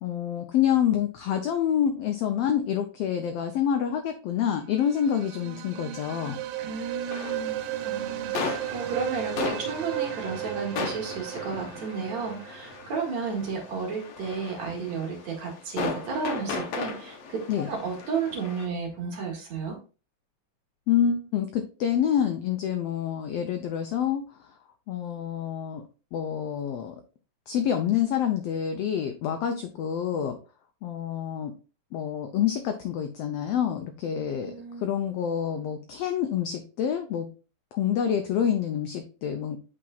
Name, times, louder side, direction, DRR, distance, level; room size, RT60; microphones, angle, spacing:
voice 1, 0.0-6.4 17.5-17.7 20.9-24.5 24.9-25.8 26.1-27.0 27.5-30.4 30.8-31.5 31.9-37.3 37.7-39.6, left 9 dB, 80° left, 6 dB, 1.4 m, -27 dB
sound 1, 4.6-13.5, right 14 dB, 85° right, 2.1 m, -35 dB
voice 2, 6.6-17.4 17.6-19.7 34.4-34.8, right 5 dB, 65° right, 0 dB, 3.0 m, -33 dB
sound 2, 7.0-18.7, left 4 dB, 60° left, 1.9 m, -37 dB
8.5 x 6.0 x 2.4 m, 0.35 s
omnidirectional pair, 3.5 m